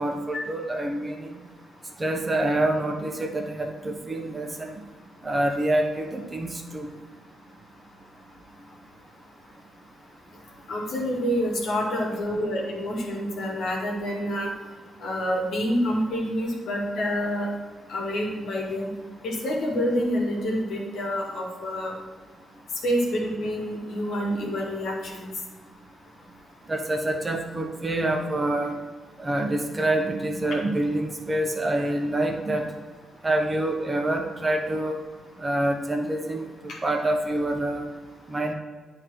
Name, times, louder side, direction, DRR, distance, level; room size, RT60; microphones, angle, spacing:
voice 1, 0.0-1.4 2.0-4.7 5.2-6.9 26.7-28.7 29.2-32.7 33.2-35.0 35.4-36.4 36.8-37.9 38.3-38.5, right 1 dB, 30° right, 3 dB, 1.3 m, -26 dB
voice 2, 10.7-14.5 15.0-17.5 17.9-18.9 19.2-21.9 22.8-25.3, equal, 70° left, -2 dB, 1.8 m, -27 dB
9.4 x 3.9 x 4.8 m, 1.4 s
hypercardioid pair, 45°, 0 cm